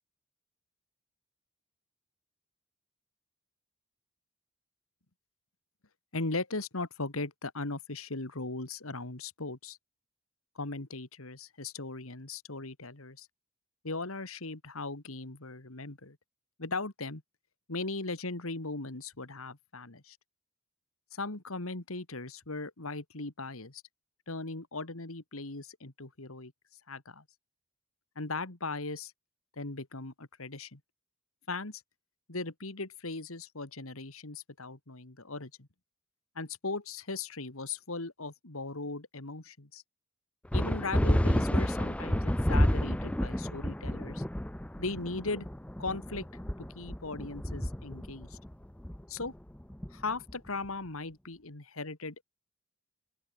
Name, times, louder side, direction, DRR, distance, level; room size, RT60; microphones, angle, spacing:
voice 1, 6.1-9.8 10.6-13.3 13.8-16.2 16.6-17.2 17.7-20.2 21.1-23.8 24.3-26.5 26.9-27.2 28.2-29.1 29.6-30.8 31.5-31.8 32.3-35.7 36.4-39.8 40.5-44.2 44.8-45.5 45.8-46.3 46.6-48.4 49.1-49.3 49.9-52.2, left 3 dB, 75° left, 2.4 m, -38 dB
sound 1, 40.5-50.5, equal, 5° left, 0.5 m, -30 dB
open air
head